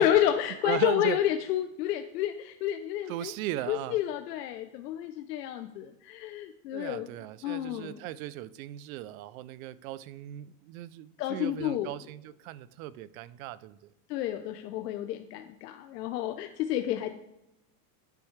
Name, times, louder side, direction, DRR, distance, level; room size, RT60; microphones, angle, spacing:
voice 1, 0.0-3.3 3.7-7.1 7.4-7.9 11.2-11.9 14.1-17.1, left 11 dB, 85° left, 7 dB, 0.8 m, -29 dB
voice 2, 0.6-1.2 3.1-4.0 6.7-13.9, right 14 dB, 60° right, 17 dB, 0.5 m, -37 dB
11.0 x 6.9 x 3.2 m, 0.91 s
supercardioid pair, 160°, 47 cm